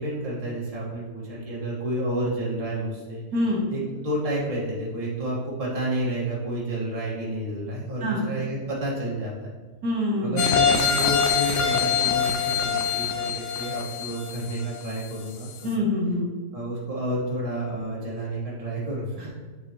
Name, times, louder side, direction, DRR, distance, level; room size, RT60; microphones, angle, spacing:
voice 1, 0.0-3.2 3.7-9.3 10.2-15.9 16.5-19.3, right 1 dB, 20° right, -6 dB, 1.6 m, -30 dB
voice 2, 3.3-3.6 8.0-8.2 9.8-10.5 15.6-16.2, left 1 dB, 70° right, -3 dB, 1.9 m, -25 dB
sound 1, 10.4-15.1 15.5-15.6, left 7 dB, 75° left, 1.2 m, -24 dB
7.9 x 4.8 x 3.1 m, 1.4 s
omnidirectional pair, 1.8 m